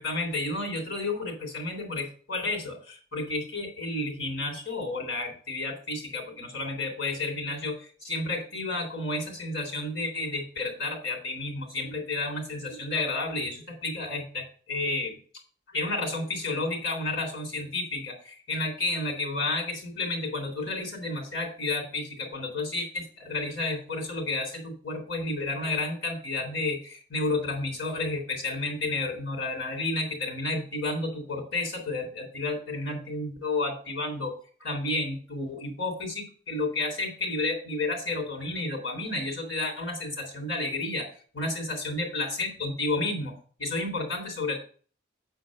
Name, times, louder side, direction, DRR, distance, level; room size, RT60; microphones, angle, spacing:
voice 1, 0.0-15.2 15.7-34.3 34.6-41.1 41.3-43.3 43.6-44.6, left 2 dB, 75° left, 2 dB, 3.5 m, -31 dB
8.2 x 4.6 x 6.5 m, 0.43 s
head